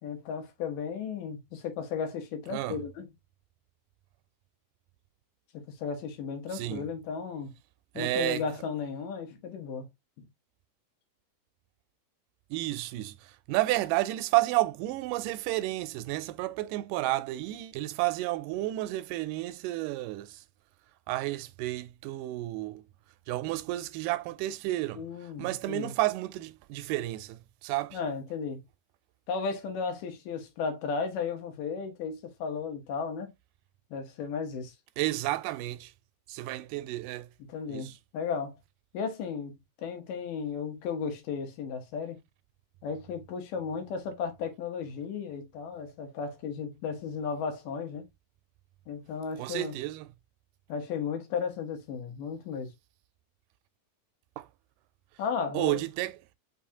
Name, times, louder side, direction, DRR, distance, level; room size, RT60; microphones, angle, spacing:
voice 1, 0.0-3.1 5.5-7.5 7.9-9.9 10.2-10.3 24.9-25.9 27.9-28.6 29.3-33.3 33.9-34.7 37.5-38.6 38.9-42.2 42.8-48.1 48.9-49.8 50.7-52.7 55.2-55.8, left 6 dB, 90° left, 2.7 m, -35 dB
voice 2, 6.5-6.9 8.0-8.4 12.5-20.4 21.1-22.8 23.3-25.0 25.4-28.0 35.0-35.9 36.3-37.3 37.7-37.9 49.4-50.1 54.4-54.5 55.5-56.2, right 17 dB, 85° right, 2.1 m, -31 dB
5.5 x 3.6 x 2.7 m
omnidirectional pair, 3.7 m